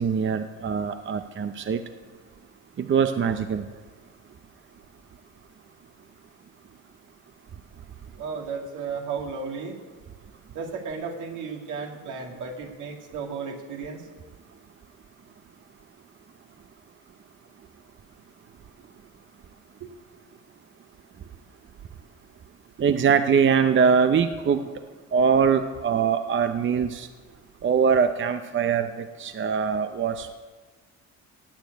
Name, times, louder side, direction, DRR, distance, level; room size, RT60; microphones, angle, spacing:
voice 1, 0.0-1.8 2.8-3.6 22.8-24.7 25.1-27.1 27.6-30.3, right 6 dB, 40° right, 8 dB, 0.7 m, -22 dB
voice 2, 8.2-9.8 10.5-14.0 19.8-19.9, right 5 dB, 80° right, 2 dB, 2.4 m, -34 dB
16.5 x 7.1 x 9.3 m, 1.4 s
cardioid pair, 90°, 30 cm